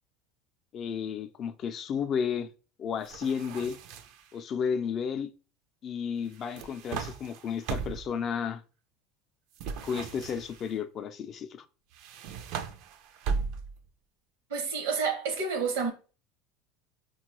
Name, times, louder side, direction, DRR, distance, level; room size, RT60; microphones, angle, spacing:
voice 1, 0.7-2.5 2.8-3.8 4.3-5.3 5.8-8.6 9.8-11.6, left 7 dB, 45° left, 0.3 m, -32 dB
sound 1, 3.0-4.3 6.3-8.2 9.6-10.7 11.9-13.9, right 6 dB, 65° right, 0.4 m, -37 dB
voice 2, 14.5-15.9, right 5 dB, 85° right, 0.8 m, -29 dB
3.6 x 2.2 x 2.9 m
supercardioid pair, 95°, 0 cm